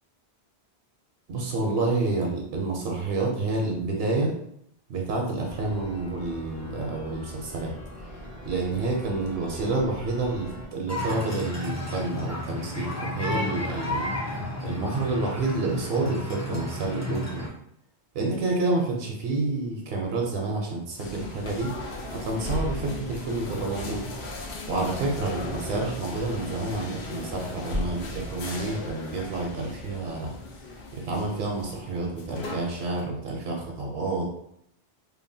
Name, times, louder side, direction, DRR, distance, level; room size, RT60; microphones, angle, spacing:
voice 1, 1.3-4.3 4.9-7.7 8.4-14.1 14.6-17.4 18.1-21.7 22.2-24.1 24.7-30.3 31.0-34.3, right 3 dB, 75° right, 0 dB, 0.8 m, -29 dB
sound 1, 5.5-10.7, equal, 50° left, 0.8 m, -42 dB
sound 2, 10.9-17.5, left 2 dB, 25° left, 0.4 m, -32 dB
sound 3, 21.0-33.0, left 2 dB, 85° left, 0.8 m, -36 dB
2.8 x 2.1 x 2.6 m, 0.72 s
omnidirectional pair, 1.1 m